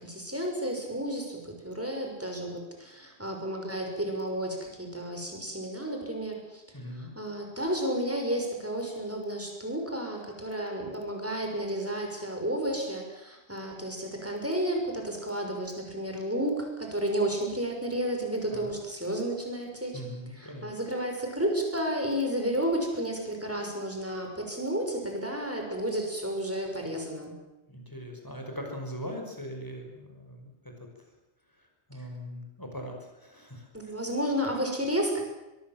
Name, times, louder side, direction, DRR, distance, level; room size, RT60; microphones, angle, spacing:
voice 1, 0.0-6.6 6.9-20.0 20.3-27.3 32.0-32.1 33.7-35.2, right 1 dB, 10° right, 2 dB, 6.2 m, -32 dB
voice 2, 6.7-7.1 18.5-18.7 19.9-20.7 27.7-30.9 31.9-33.9, equal, 15° left, 2 dB, 5.9 m, -40 dB
24.0 x 22.5 x 7.6 m, 0.97 s
omnidirectional pair, 1.2 m